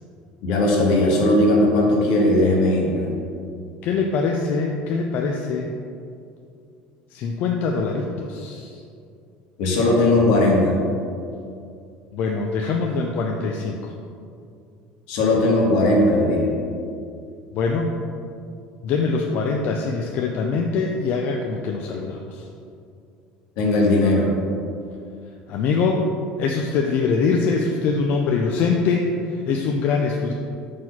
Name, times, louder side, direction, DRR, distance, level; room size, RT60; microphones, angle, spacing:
voice 1, 0.4-3.1 9.6-10.8 15.1-16.5 23.6-24.3, left 1 dB, 75° left, -2 dB, 1.5 m, -18 dB
voice 2, 3.8-5.7 7.1-8.8 12.1-13.9 17.5-17.9 18.8-22.4 25.5-26.0 26.4-29.1 29.3-30.3, left 4 dB, 55° left, 1 dB, 0.4 m, -23 dB
4.8 x 4.0 x 5.7 m, 2.4 s
cardioid pair, 135°, 3 cm